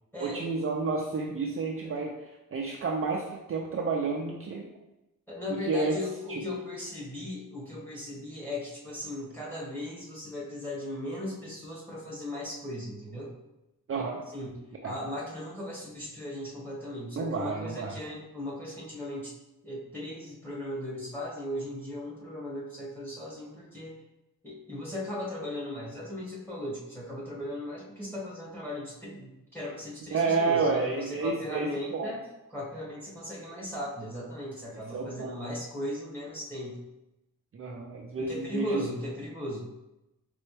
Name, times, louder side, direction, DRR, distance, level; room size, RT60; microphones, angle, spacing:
voice 1, 0.2-4.7 5.5-6.0 6.3-6.4 13.9-14.2 14.8-14.9 17.2-18.0 30.1-32.1 34.9-35.4 37.5-38.9, right 4 dB, 40° right, -1 dB, 0.4 m, -30 dB
voice 2, 5.3-13.3 14.3-19.3 19.6-23.9 24.4-32.2 32.5-36.8 38.2-39.7, left 1 dB, 5° left, -6 dB, 1.6 m, -37 dB
4.3 x 3.4 x 3.3 m, 0.94 s
wide cardioid pair, 145°, 36 cm